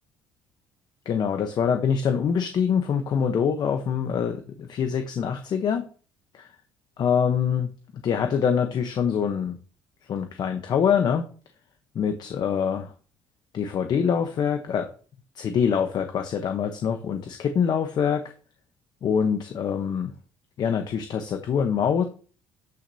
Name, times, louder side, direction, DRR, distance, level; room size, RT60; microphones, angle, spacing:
voice 1, 1.0-5.9 6.3-6.5 7.0-9.6 10.1-11.3 11.9-12.9 13.5-14.9 15.3-18.3 19.0-20.1 20.6-22.0, left 7 dB, 50° left, 7 dB, 1.0 m, -25 dB
13.0 x 6.2 x 2.8 m, 0.39 s
cardioid pair, 110°, 9 cm